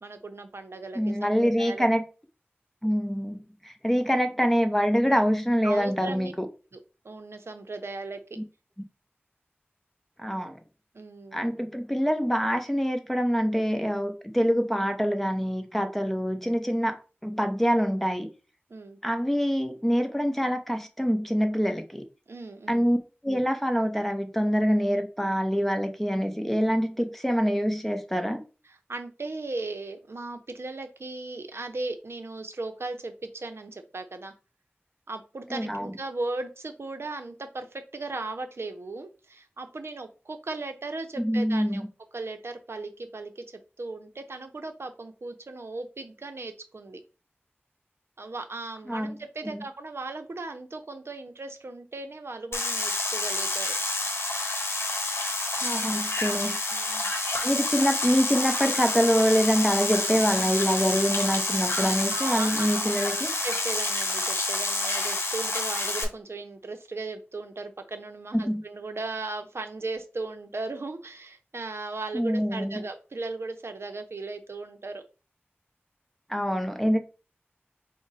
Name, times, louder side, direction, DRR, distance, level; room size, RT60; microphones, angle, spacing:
voice 1, 0.0-1.9 5.6-6.3 6.7-6.8 7.0-8.4 10.9-11.5 18.7-19.0 22.3-22.9 28.9-34.3 35.1-41.8 42.1-47.0 48.2-53.8 56.7-57.1 62.1-63.1 63.4-75.0, right 3 dB, 75° right, 0.6 m, -37 dB
voice 2, 0.9-2.0 2.8-6.5 8.4-8.5 10.2-10.6 11.3-18.3 19.0-22.0 22.7-23.0 23.2-28.4 35.5-35.9 41.2-41.9 48.9-49.1 55.6-56.6 57.4-63.3 68.3-68.6 72.1-72.8 76.3-77.0, equal, 5° left, 0.7 m, -25 dB
sound 1, 52.5-66.0, left 2 dB, 70° left, 0.8 m, -28 dB
4.8 x 2.1 x 4.0 m
wide cardioid pair, 60°, 4 cm